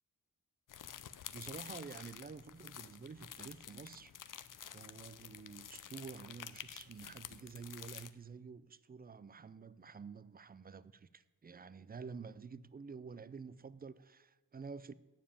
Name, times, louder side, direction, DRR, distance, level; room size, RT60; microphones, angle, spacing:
sound 1, 0.7-8.1, left 9 dB, 60° left, 0.6 m, -50 dB
voice 1, 1.3-4.1 4.7-14.9, right 5 dB, 25° right, 17 dB, 0.4 m, -50 dB
9.1 x 7.3 x 8.6 m, 1.2 s
wide cardioid pair, 125°, 36 cm